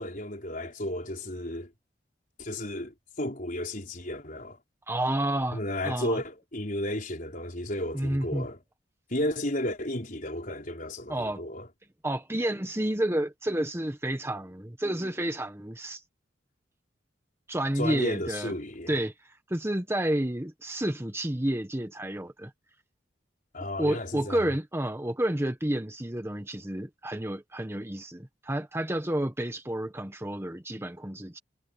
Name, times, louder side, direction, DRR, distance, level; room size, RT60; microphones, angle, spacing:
voice 1, 0.0-1.7 2.4-4.6 5.5-8.6 9.1-11.7 17.8-18.9 23.5-24.5, left 1 dB, 45° left, 4.9 m, -33 dB
voice 2, 4.9-6.2 7.9-8.5 11.1-11.5 12.0-16.0 17.5-18.5 18.9-22.5 23.8-31.4, right 1 dB, 15° right, 1.1 m, -30 dB
head